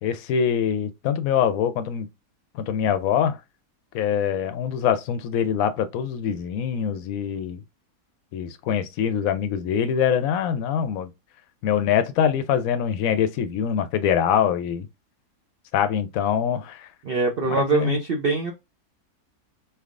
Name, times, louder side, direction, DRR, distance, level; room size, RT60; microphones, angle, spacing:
voice 1, 0.0-2.1 2.6-3.4 3.9-7.6 8.3-11.1 11.6-14.9 15.7-16.9 17.4-18.0, left 8 dB, 70° left, 1.0 m, -24 dB
voice 2, 17.0-18.5, right 4 dB, 55° right, 0.6 m, -23 dB
4.7 x 3.4 x 2.4 m
omnidirectional pair, 1.7 m